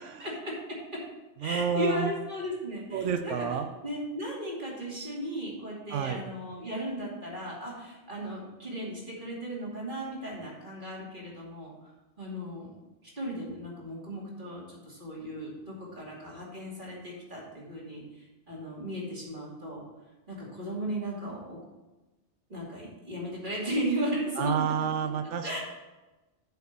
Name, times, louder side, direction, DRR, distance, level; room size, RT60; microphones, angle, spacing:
voice 1, 0.2-0.5 1.4-11.7 12.2-12.7 13.2-18.0 18.5-19.8 20.3-21.6 22.5-24.7 25.2-25.6, equal, 45° right, -6 dB, 2.8 m, -36 dB
voice 2, 1.4-2.1 2.9-3.7 5.9-6.2 24.4-25.6, right 7 dB, 85° right, 7 dB, 1.0 m, -29 dB
8.1 x 4.7 x 6.7 m, 1.1 s
omnidirectional pair, 1.2 m